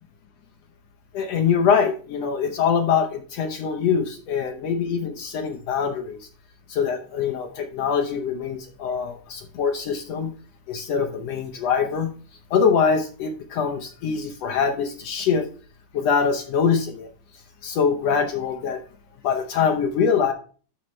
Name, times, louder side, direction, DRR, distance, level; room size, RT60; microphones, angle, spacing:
voice 1, 1.1-6.3 6.7-10.3 10.7-12.1 12.5-15.5 15.9-17.1 17.6-18.8 19.2-20.3, left 6 dB, 65° left, 4 dB, 1.8 m, -23 dB
11.5 x 6.5 x 3.2 m, 0.40 s
omnidirectional pair, 3.7 m